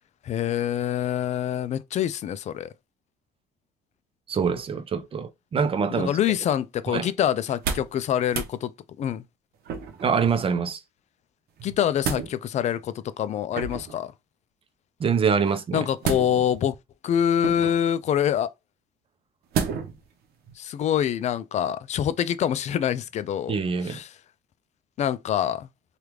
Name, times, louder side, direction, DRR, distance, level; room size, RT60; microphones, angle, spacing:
voice 1, 0.2-2.7 5.9-8.7 9.0-9.2 11.6-14.1 15.7-16.8 17.0-18.5 20.6-23.5 23.8-24.1 25.0-25.7, left 10 dB, 45° left, 0.4 m, -25 dB
voice 2, 4.3-6.1 6.9-7.1 10.0-10.8 15.0-15.9 23.5-24.0, right 6 dB, 35° right, 0.6 m, -25 dB
sound 1, 7.4-8.0 8.3-8.5 9.7-10.1 11.6-12.3 13.5-14.0 16.0-16.6 17.4-17.9 19.5-20.0 20.5-20.6, right 6 dB, 70° right, 0.8 m, -30 dB
3.3 x 2.4 x 3.0 m
cardioid pair, 110°, 17 cm